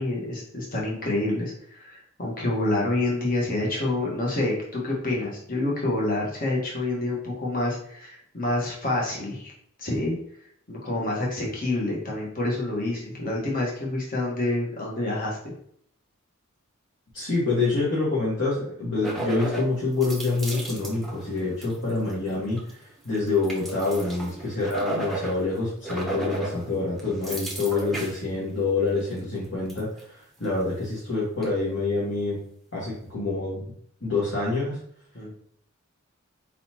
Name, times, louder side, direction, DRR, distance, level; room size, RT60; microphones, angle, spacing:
voice 1, 0.0-9.5 9.8-10.2 10.7-15.5 26.4-26.8 35.1-35.3, left 2 dB, 45° left, -3 dB, 1.3 m, -28 dB
voice 2, 17.1-32.4 32.7-33.6 34.0-34.8, left 3 dB, 65° left, -7 dB, 1.6 m, -26 dB
sound 1, 19.0-19.7 20.0-22.2 22.5-22.7 23.0-25.6 25.8-26.6 27.0-28.2 28.9-29.1 29.7-30.0 30.4-30.5 31.4-31.5, right 2 dB, ahead, 0.8 m, -34 dB
4.4 x 4.1 x 2.9 m, 0.66 s
head